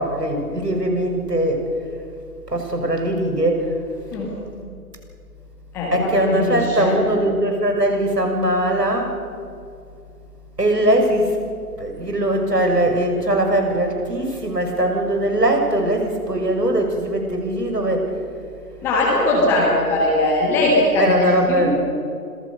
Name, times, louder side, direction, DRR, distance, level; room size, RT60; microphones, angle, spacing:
voice 1, 0.0-1.7 2.5-3.7 5.9-9.2 10.6-11.4 11.8-18.1 21.0-21.8, right 1 dB, 85° right, 3 dB, 6.8 m, -20 dB
voice 2, 5.7-7.0 18.8-21.8, left 2 dB, 5° left, -3 dB, 1.4 m, -20 dB
26.0 x 19.0 x 6.8 m, 2.4 s
figure-of-eight pair, 155°, 47 cm